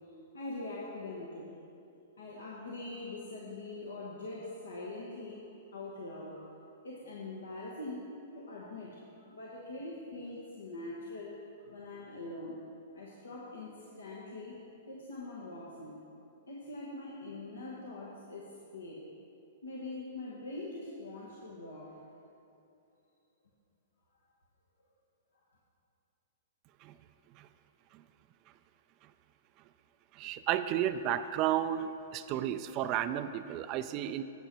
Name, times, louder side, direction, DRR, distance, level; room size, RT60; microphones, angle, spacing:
voice 1, 0.3-1.6 2.2-6.5 6.8-12.6 12.9-14.6 14.9-16.1 16.5-19.0 19.6-22.0, left 2 dB, 90° left, -5 dB, 1.3 m, -43 dB
voice 2, 30.1-34.2, right 11 dB, 40° right, 11 dB, 0.3 m, -32 dB
8.8 x 7.7 x 4.6 m, 2.7 s
hypercardioid pair, 130°, 0 cm